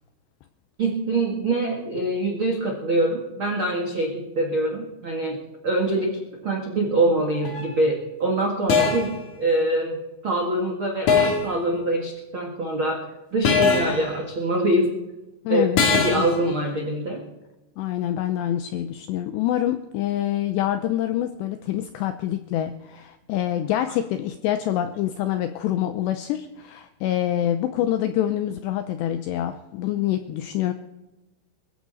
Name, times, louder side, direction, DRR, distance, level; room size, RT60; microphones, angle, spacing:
voice 1, 0.8-10.0 10.2-13.0 13.3-14.9 15.5-15.6 15.9-17.2, right 1 dB, 75° right, 1 dB, 1.1 m, -24 dB
sound 1, 7.4-7.7 8.7-9.2 11.1-11.6 13.4-14.1 15.8-16.4, left 5 dB, 60° left, 2.2 m, -21 dB
voice 2, 15.5-15.8 16.2-16.3 17.8-30.7, left 12 dB, 85° left, 9 dB, 2.4 m, -26 dB
22.5 x 14.5 x 4.1 m, 1.0 s
omnidirectional pair, 5.8 m